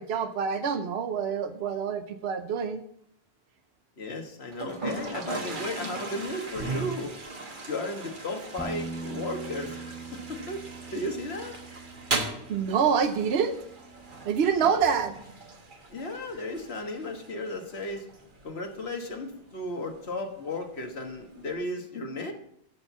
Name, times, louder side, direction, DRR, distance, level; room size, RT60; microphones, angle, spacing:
voice 1, 0.0-2.8 12.5-13.6 14.2-15.1, right 7 dB, 80° right, 8 dB, 1.0 m, -26 dB
voice 2, 4.0-7.2 7.7-10.6 10.9-11.5 14.6-14.9 15.9-18.1 18.4-22.3, left 2 dB, 80° left, 4 dB, 1.7 m, -34 dB
Toilet flush, 4.5-21.5, right 3 dB, 50° right, 1.4 m, -39 dB
Bass guitar, 8.6-14.8, right 3 dB, ahead, 0.9 m, -43 dB
12.5 x 4.5 x 6.9 m, 0.71 s
omnidirectional pair, 1.1 m